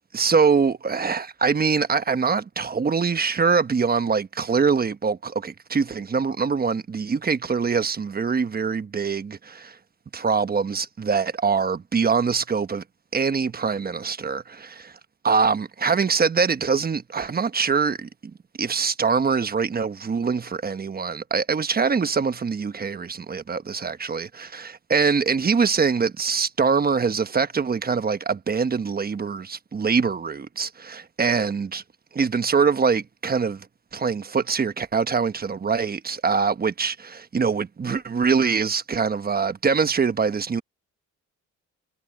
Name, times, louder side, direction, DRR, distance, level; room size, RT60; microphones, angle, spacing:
voice 1, 0.1-9.8 10.1-12.8 13.1-14.9 15.2-18.1 18.6-31.8 32.1-33.7 33.9-40.6, right 5 dB, 30° right, 1.1 m, -23 dB
cardioid pair, 90°, 30 cm